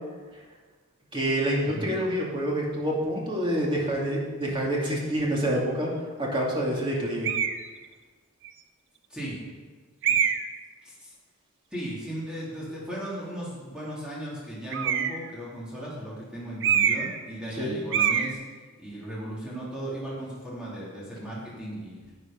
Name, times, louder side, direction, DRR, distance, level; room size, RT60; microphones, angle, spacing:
voice 1, 1.1-5.9 6.2-7.3 17.6-17.8, right 1 dB, 25° right, -3 dB, 2.5 m, -27 dB
sound 1, 7.2-7.6 8.4-8.5 10.0-10.6 14.7-15.3 16.6-17.2 17.5-17.6 17.9-18.3, right 8 dB, 55° right, 0.6 m, -24 dB
voice 2, 10.8-11.1 11.7-18.4 18.8-22.0, right 1 dB, 5° right, -7 dB, 3.2 m, -36 dB
11.0 x 8.6 x 5.2 m, 1.3 s
head